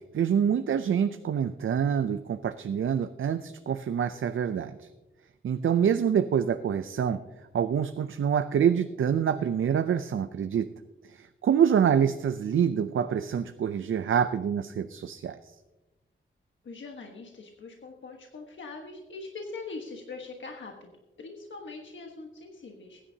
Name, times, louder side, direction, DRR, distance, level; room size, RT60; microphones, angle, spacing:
voice 1, 0.1-4.9 5.4-7.2 7.5-10.7 11.1-15.5, right 8 dB, 80° right, 10 dB, 0.5 m, -26 dB
voice 2, 16.6-20.9 21.2-23.0, left 3 dB, 70° left, 1 dB, 1.4 m, -42 dB
20.5 x 10.0 x 2.8 m, 1.1 s
wide cardioid pair, 90°, 20 cm